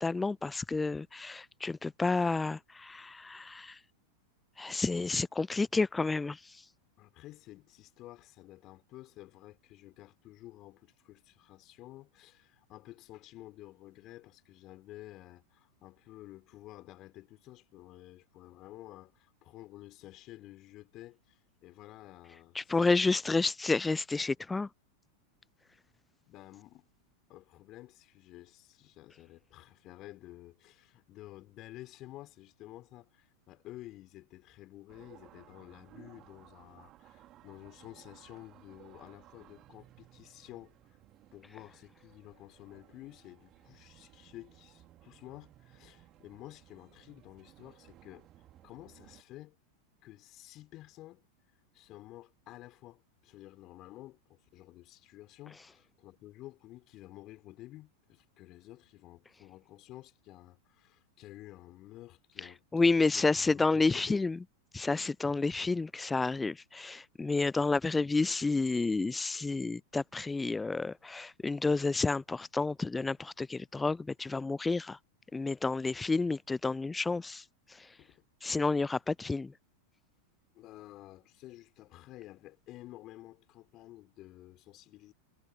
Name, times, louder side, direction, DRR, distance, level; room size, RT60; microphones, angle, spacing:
voice 1, 0.0-3.8 4.6-6.7 22.5-24.7 62.4-64.4 64.7-75.0 75.3-78.0 78.4-79.5, left 3 dB, 10° left, 0.4 m, -30 dB
voice 2, 7.0-22.6 26.3-26.9 27.3-40.7 41.3-48.3 48.6-49.6 50.0-51.2 51.7-64.2 78.0-78.2 80.5-85.1, left 16 dB, 35° left, 5.6 m, -51 dB
sound 1, 34.9-49.2, right 14 dB, 35° right, 2.6 m, -59 dB
figure-of-eight pair, 90°, 0 cm